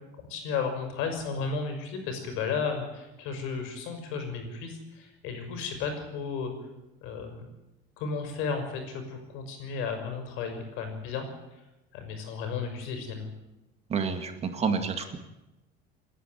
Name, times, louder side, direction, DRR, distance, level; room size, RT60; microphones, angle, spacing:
voice 1, 0.3-6.5 7.0-7.5 8.0-11.3 11.5-11.6 11.9-13.3, left 5 dB, 75° left, 5 dB, 6.1 m, -33 dB
voice 2, 13.9-15.2, right 5 dB, 30° right, 7 dB, 2.1 m, -29 dB
29.0 x 11.0 x 9.4 m, 0.98 s
cardioid pair, 150°, 21 cm